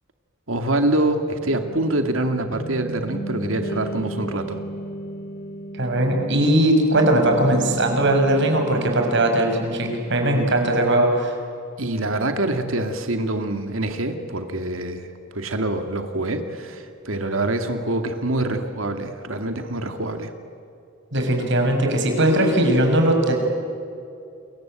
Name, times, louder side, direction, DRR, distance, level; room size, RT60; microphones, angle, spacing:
voice 1, 0.5-4.6 10.3-10.5 11.8-15.1 15.3-20.3, right 1 dB, 80° right, 6 dB, 2.4 m, -25 dB
sound 1, 1.4-11.0, right 2 dB, 50° left, 2.5 m, -35 dB
voice 2, 5.7-11.3 21.1-23.3, right 1 dB, 65° right, 3 dB, 6.0 m, -19 dB
28.5 x 23.0 x 9.0 m, 2.6 s
head